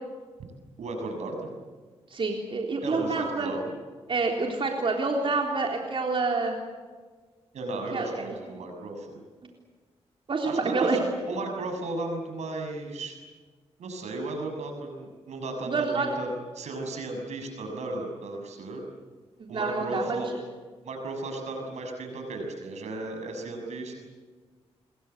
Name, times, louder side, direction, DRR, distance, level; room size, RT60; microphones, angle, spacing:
voice 1, 0.8-1.5 2.8-3.7 7.5-9.2 10.4-13.2 13.8-16.3 16.5-18.8 19.5-20.3 20.8-23.9, right 2 dB, 85° right, 4 dB, 6.7 m, -35 dB
voice 2, 2.1-3.5 4.1-6.6 7.9-8.2 10.3-11.0 15.7-16.1 19.5-20.2, right 3 dB, 50° right, 1 dB, 3.8 m, -27 dB
27.5 x 22.5 x 8.2 m, 1.4 s
cardioid pair, 70°, 11 cm